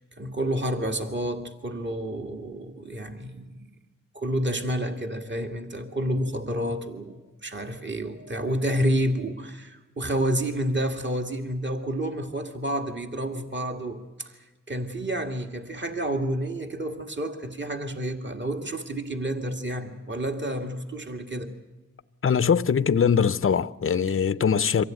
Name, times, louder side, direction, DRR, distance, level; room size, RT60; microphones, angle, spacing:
voice 1, 0.0-3.7 4.1-21.5 24.1-24.2, right 1 dB, 35° right, 2.1 m, -29 dB
voice 2, 22.2-24.8, left 7 dB, 40° left, 0.6 m, -22 dB
24.0 x 16.0 x 9.2 m
cardioid pair, 50°, 33 cm